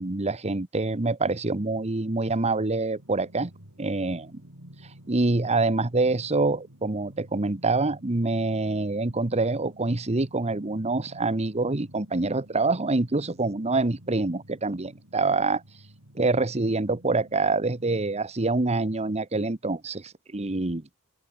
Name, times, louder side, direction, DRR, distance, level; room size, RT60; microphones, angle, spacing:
voice 1, 0.0-3.5 3.8-4.4 5.1-15.6 16.1-20.9, right 3 dB, 30° right, 1.1 m, -26 dB
sound 1, 2.9-18.2, right 1 dB, 65° right, 5.0 m, -51 dB
open air
head